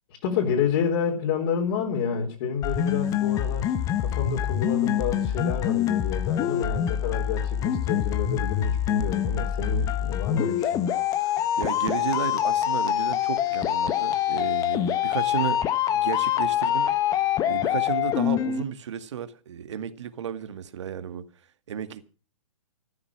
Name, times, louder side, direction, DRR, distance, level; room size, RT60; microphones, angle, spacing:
voice 1, 0.2-10.9, left 6 dB, 40° left, 4.0 m, -29 dB
sound 1, 2.6-18.6, left 11 dB, 20° left, 1.1 m, -25 dB
voice 2, 11.2-15.6 15.9-16.9 17.5-21.2 21.7-22.0, right 9 dB, 55° right, 2.1 m, -33 dB
14.5 x 13.0 x 6.2 m
figure-of-eight pair, 125°, 18 cm